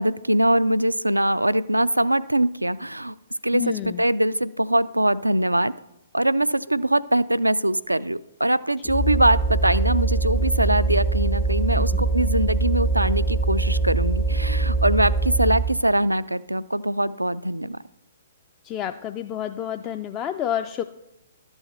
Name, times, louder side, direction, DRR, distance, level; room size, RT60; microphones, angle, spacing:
voice 1, 0.0-3.1 3.4-5.7 6.1-17.8, right 1 dB, 90° right, 17 dB, 0.3 m, -22 dB
voice 2, 3.5-4.0 11.8-12.0 18.6-20.8, left 10 dB, 25° left, 7 dB, 0.4 m, -29 dB
sound 1, 8.9-15.8, right 3 dB, 40° left, 0.8 m, -23 dB
12.5 x 7.9 x 4.3 m, 0.91 s
figure-of-eight pair, 125°, 0 cm